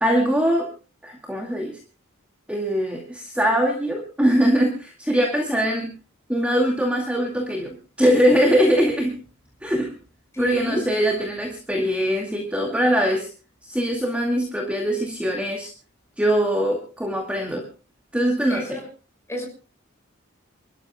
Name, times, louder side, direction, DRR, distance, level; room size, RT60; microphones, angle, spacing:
voice 1, 0.0-0.7 1.0-1.8 2.5-5.9 6.3-9.2 9.6-9.9 10.4-13.3 13.6-15.7 16.2-17.6 18.1-18.8, equal, 5° right, 1 dB, 2.2 m, -22 dB
voice 2, 10.3-10.8 18.5-18.9 19.3-19.5, left 1 dB, 10° left, 1 dB, 5.9 m, -29 dB
29.0 x 13.0 x 2.3 m, 0.35 s
head